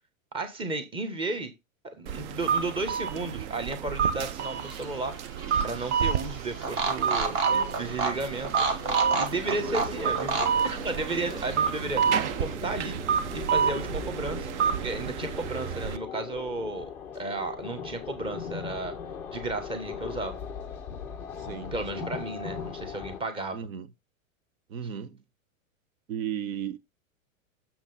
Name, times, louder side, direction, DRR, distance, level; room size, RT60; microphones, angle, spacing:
voice 1, 0.3-1.5 1.8-5.1 5.6-8.7 9.2-12.1 12.4-13.0 13.3-14.5 14.8-19.0 19.3-20.4 21.7-23.7, right 2 dB, 15° right, 1.2 m, -33 dB
sound 1, 2.1-16.0, right 7 dB, 55° right, 0.9 m, -29 dB
sound 2, 4.4-12.5, right 4 dB, 30° right, 1.4 m, -33 dB
sound 3, 7.5-23.2, left 7 dB, 5° left, 0.3 m, -40 dB
voice 2, 9.6-10.1 21.4-22.1 23.5-23.9 24.7-25.2 26.1-26.8, right 9 dB, 80° right, 1.1 m, -36 dB
7.0 x 5.9 x 4.1 m
hypercardioid pair, 145°, 41 cm